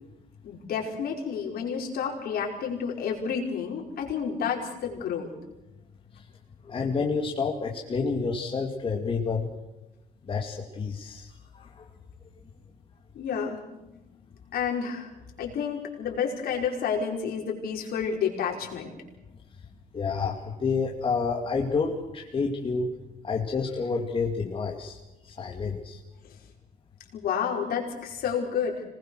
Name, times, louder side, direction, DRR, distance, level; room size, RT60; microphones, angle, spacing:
voice 1, 0.4-5.3 13.1-13.6 14.5-15.1 15.4-18.9 27.1-28.8, left 7 dB, 65° left, 0 dB, 5.1 m, -30 dB
voice 2, 6.6-9.5 10.3-11.3 11.5-11.9 19.9-22.9 23.2-25.0 25.2-26.0, left 4 dB, 30° left, 0 dB, 2.5 m, -29 dB
26.0 x 20.0 x 6.4 m, 0.99 s
cardioid pair, 110°, 17 cm